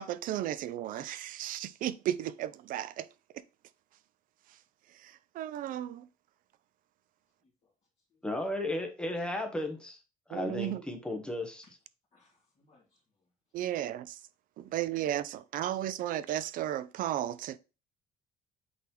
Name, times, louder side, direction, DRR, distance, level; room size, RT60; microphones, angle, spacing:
voice 1, 0.0-3.1 5.0-6.1 10.3-10.8 13.5-14.2 14.6-17.6, right 12 dB, 55° right, 0.5 m, -34 dB
voice 2, 8.2-10.0 10.3-11.6, left 1 dB, 5° left, 1.0 m, -34 dB
voice 3, 12.1-13.0, left 3 dB, 35° left, 2.2 m, -68 dB
8.4 x 4.0 x 3.0 m
cardioid pair, 170°, 17 cm